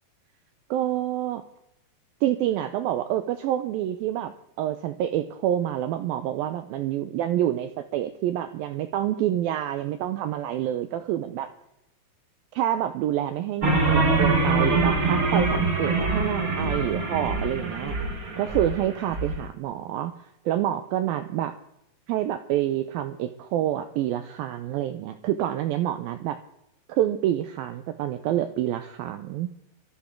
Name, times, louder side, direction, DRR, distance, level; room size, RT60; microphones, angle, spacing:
voice 1, 0.7-1.4 2.2-11.5 12.5-18.0 18.4-21.5 22.1-26.4 26.9-29.5, right 12 dB, 85° right, 9 dB, 2.1 m, -27 dB
sound 1, 13.6-19.3, right 3 dB, 45° right, 1.1 m, -24 dB
19.5 x 14.0 x 3.8 m, 0.84 s
omnidirectional pair, 4.9 m